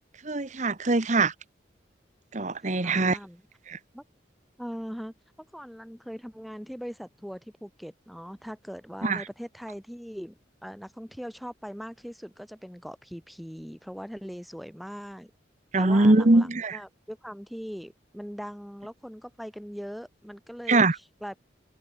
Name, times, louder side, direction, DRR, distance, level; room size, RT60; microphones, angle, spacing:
voice 1, 0.2-1.3 2.3-3.2 3.7-3.8 9.0-9.2 15.7-16.8 20.7-20.9, right 2 dB, 40° right, 1.2 m, -22 dB
voice 2, 2.8-3.4 3.9-4.0 4.6-5.1 5.5-10.3 10.6-15.3 15.8-21.4, equal, ahead, 6.6 m, -40 dB
open air
head